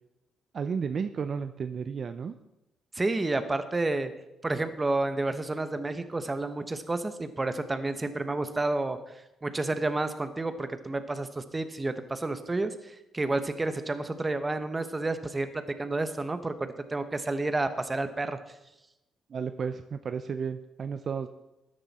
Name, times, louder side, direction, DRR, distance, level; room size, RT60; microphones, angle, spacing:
voice 1, 0.5-2.3 19.3-21.3, right 6 dB, 50° right, 9 dB, 0.6 m, -33 dB
voice 2, 2.9-4.1 4.4-9.1 9.4-18.4, right 2 dB, 20° right, 10 dB, 1.1 m, -30 dB
13.0 x 9.8 x 4.3 m, 0.93 s
cardioid pair, 90°, 0 cm